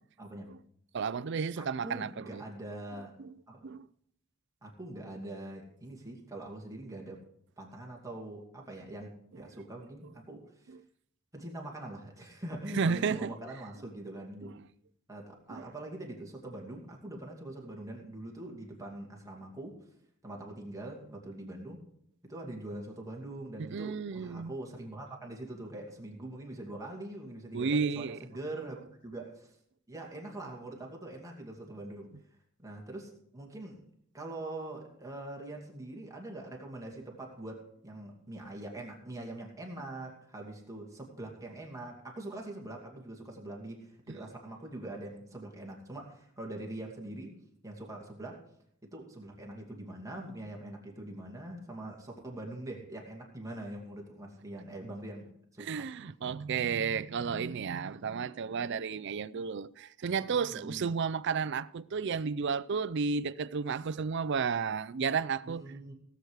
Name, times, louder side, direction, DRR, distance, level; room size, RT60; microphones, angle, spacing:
voice 1, 0.2-0.5 1.6-3.2 3.5-3.7 4.6-7.2 7.6-10.7 11.3-14.5 15.1-19.8 20.2-21.8 22.2-28.8 29.0-29.5 29.9-32.1 32.6-33.8 34.1-47.4 47.6-48.4 48.8-55.8 60.5-60.9 65.4-65.9, right 1 dB, 15° right, 2.5 m, -43 dB
voice 2, 0.9-2.4 3.2-3.3 3.6-3.9 10.7-10.8 12.7-13.3 14.4-14.5 15.5-15.6 23.6-24.5 27.5-28.2 44.1-44.3 55.6-65.6, right 5 dB, 55° right, 0.4 m, -32 dB
17.5 x 8.1 x 4.9 m
head